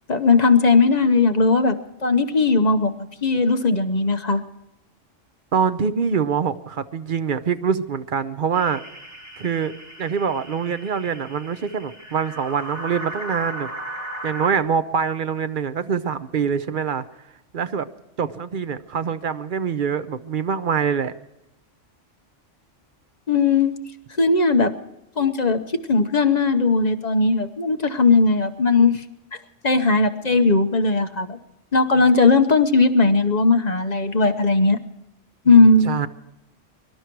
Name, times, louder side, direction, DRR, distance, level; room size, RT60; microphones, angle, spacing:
voice 1, 0.1-2.9 3.2-4.4 23.3-23.7 24.2-24.7 25.2-25.6 25.9-29.0 29.6-31.4 31.7-34.8 35.4-35.9, left 3 dB, 35° left, 7 dB, 1.0 m, -18 dB
voice 2, 5.5-8.8 9.4-13.7 14.2-17.0 17.5-17.9 18.2-21.1 35.5-35.6 35.8-36.1, right 6 dB, 50° right, 11 dB, 0.8 m, -24 dB
sound 1, 8.5-14.5, right 1 dB, 15° right, 3.1 m, -36 dB
24.0 x 12.0 x 4.6 m, 0.87 s
omnidirectional pair, 1.3 m